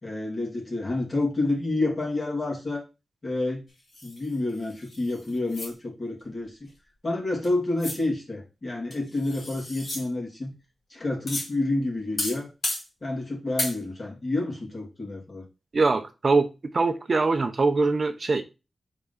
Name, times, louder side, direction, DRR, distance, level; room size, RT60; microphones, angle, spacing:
voice 1, 0.0-2.8 3.2-3.7 4.0-6.7 7.0-10.5 10.9-12.5 13.0-15.4, left 2 dB, 35° left, -3 dB, 2.7 m, -29 dB
sound 1, 3.9-5.7 7.4-7.5 7.8-8.0 8.9-10.1 11.3-11.5 12.2-12.8 13.6-13.8, left 1 dB, 50° left, 3.0 m, -33 dB
voice 2, 15.7-16.5 16.7-18.4, right 3 dB, 45° right, 7 dB, 0.7 m, -22 dB
4.7 x 3.7 x 5.6 m, 0.28 s
wide cardioid pair, 115°, 0 cm